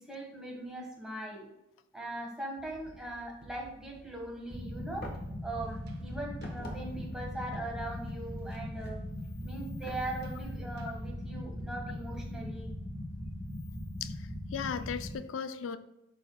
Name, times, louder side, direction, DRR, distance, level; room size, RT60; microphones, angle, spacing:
voice 1, 0.0-1.5 1.9-5.1 5.4-9.0 9.4-12.7, right 1 dB, 5° right, -2 dB, 1.4 m, -40 dB
sound 1, 2.6-12.4, right 1 dB, 55° right, 0.8 m, -55 dB
sound 2, 4.5-15.2, left 1 dB, 15° left, 0.7 m, -40 dB
sound 3, 5.0-5.3 5.6-10.1, left 1 dB, 50° left, 1.1 m, -49 dB
voice 2, 14.0-15.8, left 7 dB, 85° left, 12 dB, 0.4 m, -37 dB
11.5 x 4.1 x 2.2 m, 0.87 s
head